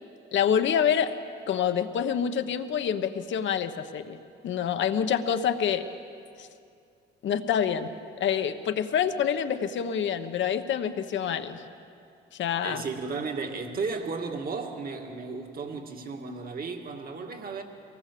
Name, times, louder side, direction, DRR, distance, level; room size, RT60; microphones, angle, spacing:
voice 1, 0.3-1.1 1.5-4.2 4.4-5.9 6.4-6.5 7.2-7.9 8.2-11.6 12.4-12.8, left 8 dB, 70° left, 8 dB, 1.2 m, -26 dB
voice 2, 12.6-17.6, right 4 dB, 45° right, 3 dB, 2.2 m, -34 dB
23.5 x 19.0 x 6.9 m, 2.4 s
cardioid pair, 90°, 20 cm